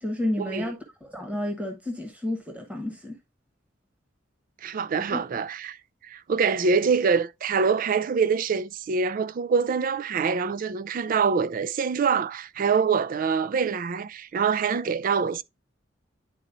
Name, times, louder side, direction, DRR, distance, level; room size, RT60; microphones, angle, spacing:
voice 1, 0.0-3.2 5.1-5.2, left 1 dB, 5° right, 1.2 m, -31 dB
voice 2, 4.6-15.4, right 5 dB, 45° right, 0.4 m, -25 dB
10.5 x 4.1 x 2.5 m
head